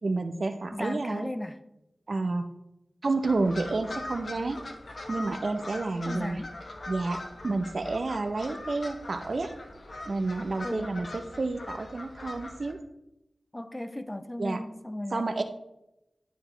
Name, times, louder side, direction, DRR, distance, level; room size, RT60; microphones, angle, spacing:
voice 1, 0.0-1.3 2.1-2.4 3.0-4.6 5.1-6.4 6.9-9.5 10.1-12.8 14.4-14.6 15.1-15.4, right 3 dB, 60° right, 8 dB, 0.7 m, -30 dB
voice 2, 0.7-1.6 6.1-6.5 10.6-11.0 13.5-15.3, left 1 dB, 15° left, 9 dB, 0.5 m, -36 dB
sound 1, 3.2-12.7, left 2 dB, 55° left, 1.2 m, -41 dB
12.0 x 4.8 x 3.3 m, 0.88 s
wide cardioid pair, 85°, 0 cm